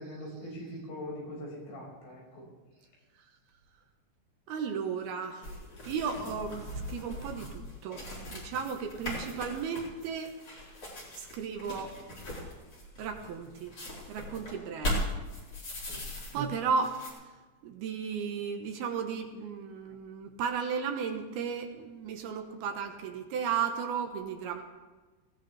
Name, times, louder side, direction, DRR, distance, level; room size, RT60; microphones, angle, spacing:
voice 1, 0.0-2.5 15.9-16.0, equal, 70° left, -4 dB, 7.7 m, -42 dB
voice 2, 4.5-5.5 5.9-8.0 8.3-10.4 11.1-12.0 13.0-13.7 14.1-15.0 16.3-17.0 17.6-24.6, right 6 dB, 70° right, 4 dB, 2.7 m, -34 dB
sound 1, 5.4-16.5 16.8-17.1, left 1 dB, 35° left, 5.1 m, -39 dB
19.5 x 17.0 x 3.4 m, 1.3 s
omnidirectional pair, 4.9 m